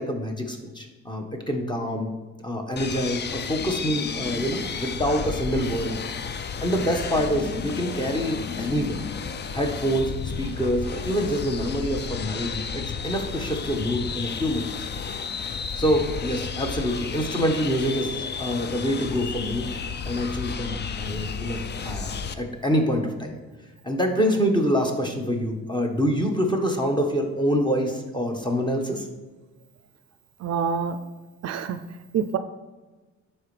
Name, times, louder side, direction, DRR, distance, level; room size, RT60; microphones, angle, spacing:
voice 1, 0.0-2.1 2.4-6.0 6.6-9.0 9.5-10.1 10.4-14.7 15.8-19.7 20.0-23.4 23.8-29.1, equal, 15° left, 3 dB, 1.2 m, -26 dB
sound 1, 2.8-22.3, left 6 dB, 35° left, 0.5 m, -32 dB
voice 2, 30.4-31.0 31.4-31.8 32.1-32.4, right 7 dB, 60° right, 10 dB, 0.5 m, -26 dB
11.0 x 4.4 x 3.3 m, 1.2 s
cardioid pair, 90°, 30 cm